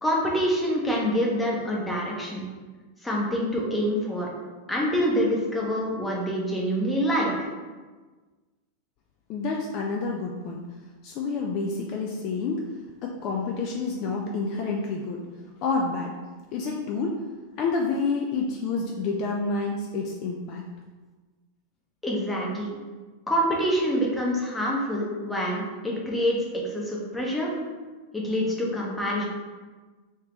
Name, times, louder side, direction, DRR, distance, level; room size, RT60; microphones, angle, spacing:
voice 1, 0.0-2.4 3.0-4.3 4.7-7.5 22.0-22.7 23.3-26.4 26.7-27.5 28.1-29.2, equal, 5° left, -3 dB, 0.8 m, -26 dB
voice 2, 9.3-10.6 11.0-12.7 13.0-15.2 15.6-16.1 16.5-17.2 17.6-20.7, left 4 dB, 40° left, 0 dB, 0.3 m, -28 dB
3.2 x 2.8 x 3.1 m, 1.3 s
figure-of-eight pair, 90°, 0 cm